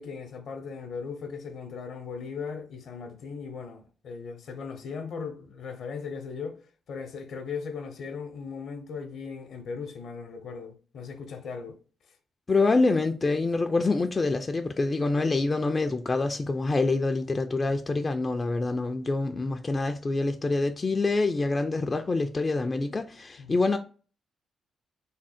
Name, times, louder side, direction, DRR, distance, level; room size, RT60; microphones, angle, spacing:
voice 1, 0.0-6.6 6.9-11.8 12.1-12.2 23.4-23.6, left 5 dB, 70° left, 0.7 m, -38 dB
voice 2, 12.5-23.8, left 3 dB, 35° left, 0.4 m, -26 dB
3.6 x 2.0 x 4.1 m
supercardioid pair, 50°, 0 cm